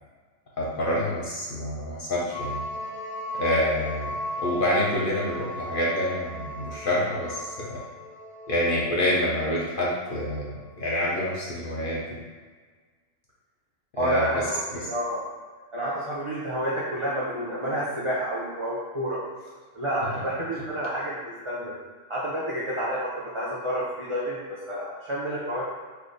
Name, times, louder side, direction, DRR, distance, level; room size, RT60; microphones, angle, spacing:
voice 1, 0.6-2.6 3.3-7.8 8.5-12.0 13.9-14.4 14.7-14.9, left 1 dB, 55° left, -5 dB, 0.6 m, -27 dB
sound 1, 2.3-10.4, left 1 dB, 80° right, 1.3 m, -37 dB
voice 2, 14.0-15.2 15.7-19.2 19.7-21.8 22.1-25.6, right 1 dB, 55° right, -7 dB, 0.3 m, -29 dB
3.3 x 2.0 x 3.8 m, 1.5 s
omnidirectional pair, 1.3 m